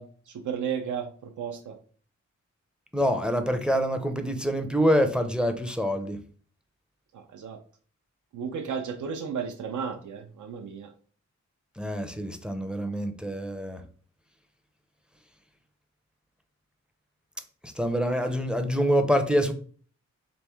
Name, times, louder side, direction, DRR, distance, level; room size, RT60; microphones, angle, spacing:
voice 1, 0.0-1.8 7.1-7.6 8.3-10.9, right 7 dB, 85° right, 5 dB, 0.5 m, -34 dB
voice 2, 2.9-6.2 11.8-13.8 17.8-19.5, equal, 5° right, 7 dB, 0.4 m, -26 dB
3.5 x 3.1 x 3.4 m, 0.43 s
wide cardioid pair, 110°, 29 cm